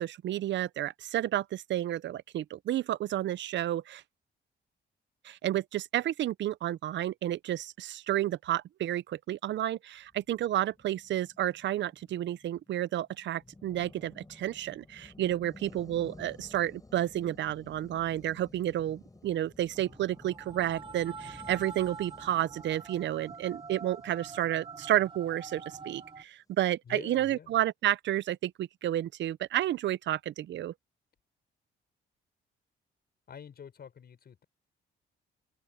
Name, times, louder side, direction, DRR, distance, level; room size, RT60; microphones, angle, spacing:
voice 1, 0.0-4.0 5.2-30.7, right 12 dB, 65° right, 0.6 m, -31 dB
sound 1, 10.1-25.6, left 2 dB, 15° left, 6.1 m, -54 dB
sound 2, 19.7-26.2, right 5 dB, 25° right, 1.1 m, -46 dB
voice 2, 26.9-27.5 33.3-34.4, left 7 dB, 50° left, 5.8 m, -47 dB
open air
cardioid pair, 90°, 20 cm